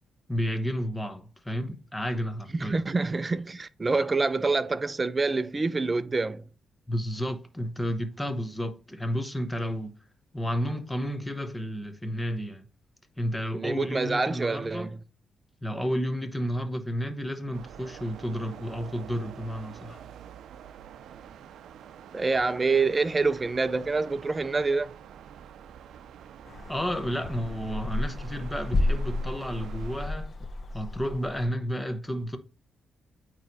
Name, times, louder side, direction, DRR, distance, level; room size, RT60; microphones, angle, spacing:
voice 1, 0.3-2.8 3.9-4.1 6.9-9.9 10.3-12.7 13.2-14.9 15.6-20.0 26.7-30.3 30.7-32.4, equal, 10° left, 1.0 m, -31 dB
voice 2, 2.6-6.4 13.5-15.0 22.1-24.9, right 3 dB, 25° right, 0.5 m, -26 dB
sound 1, 17.5-30.1, right 9 dB, 80° right, 0.4 m, -47 dB
sound 2, 26.5-31.5, left 2 dB, 40° left, 0.8 m, -32 dB
8.9 x 3.1 x 4.1 m
cardioid pair, 115°, 0 cm